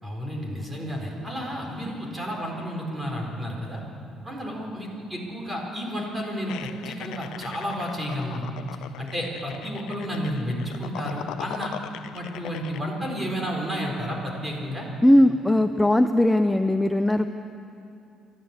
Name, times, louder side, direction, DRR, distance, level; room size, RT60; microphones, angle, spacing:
voice 1, 0.0-3.8 4.2-8.4 9.0-11.7 12.1-14.9, equal, 15° right, 0 dB, 4.2 m, -31 dB
sound 1, 6.5-12.8, left 13 dB, 90° left, 0.5 m, -40 dB
voice 2, 15.0-17.3, left 1 dB, 5° left, 8 dB, 0.5 m, -19 dB
29.5 x 12.5 x 8.3 m, 2.8 s
cardioid pair, 135°, 0 cm